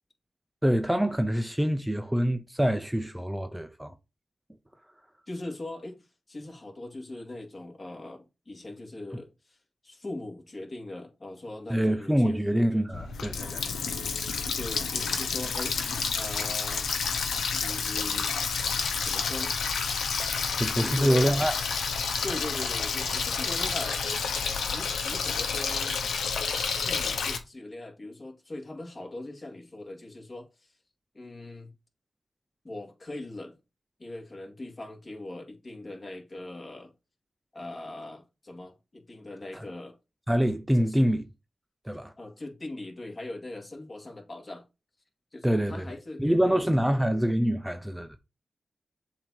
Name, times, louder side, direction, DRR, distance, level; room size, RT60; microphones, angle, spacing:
voice 1, 0.6-3.9 11.7-13.7 20.3-21.5 39.5-39.6 40.3-41.2 41.8-42.1 45.4-45.8 46.2-48.2, equal, 5° right, 0.6 m, -25 dB
voice 2, 5.3-9.6 9.8-12.4 12.7-12.9 14.5-15.8 16.1-16.9 17.6-18.3 19.0-19.5 20.8-21.3 22.2-24.2 24.7-26.0 26.8-30.8 31.1-31.7 32.6-33.6 34.0-36.9 37.5-40.0 40.7-41.0 42.2-44.6 45.3-47.0, left 2 dB, 40° left, 2.1 m, -40 dB
Water tap faucet, 12.9-27.4, left 5 dB, 90° left, 0.9 m, -30 dB
7.3 x 2.8 x 4.7 m
cardioid pair, 55°, 0 cm